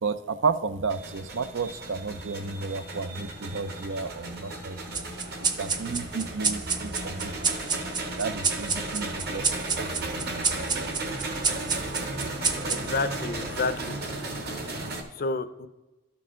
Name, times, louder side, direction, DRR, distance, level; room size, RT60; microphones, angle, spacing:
voice 1, 0.0-5.1 5.4-7.5 8.2-10.5, right 4 dB, 90° right, 12 dB, 0.5 m, -32 dB
sound 1, 0.9-15.0, right 2 dB, 55° right, 1.2 m, -35 dB
sound 2, 4.9-13.8, right 5 dB, 25° right, 0.5 m, -31 dB
voice 2, 12.6-14.0 15.2-15.7, left 3 dB, 50° left, 12 dB, 0.5 m, -30 dB
13.0 x 4.7 x 3.7 m, 1.1 s
head